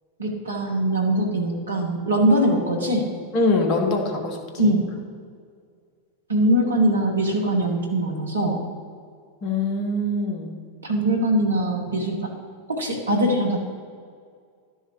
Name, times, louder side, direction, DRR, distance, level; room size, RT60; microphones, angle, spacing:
voice 1, 0.2-3.1 4.6-4.9 6.3-8.7 10.8-12.3 12.7-13.6, right 1 dB, 75° right, 1 dB, 1.5 m, -22 dB
voice 2, 3.3-4.7 9.4-10.6, left 2 dB, 40° left, 3 dB, 1.5 m, -23 dB
12.0 x 6.3 x 3.2 m, 2.1 s
figure-of-eight pair, 90°, 0 cm